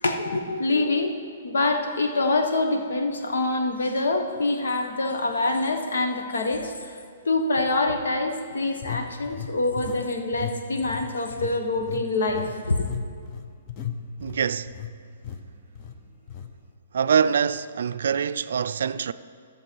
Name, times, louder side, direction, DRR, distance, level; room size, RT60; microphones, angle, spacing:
voice 1, 0.0-1.1 1.4-7.0 7.2-12.9, left 2 dB, 90° left, 1.3 m, -25 dB
sound 1, 4.4-4.5 5.1-5.3 8.8-10.1 10.3-10.6 10.8-14.9 15.2-15.4 15.8-15.9 16.3-16.5, left 8 dB, 30° left, 0.7 m, -36 dB
voice 2, 14.2-14.8 16.9-19.1, right 7 dB, 75° right, 0.4 m, -24 dB
14.0 x 6.8 x 4.6 m
hypercardioid pair, 155°, 0 cm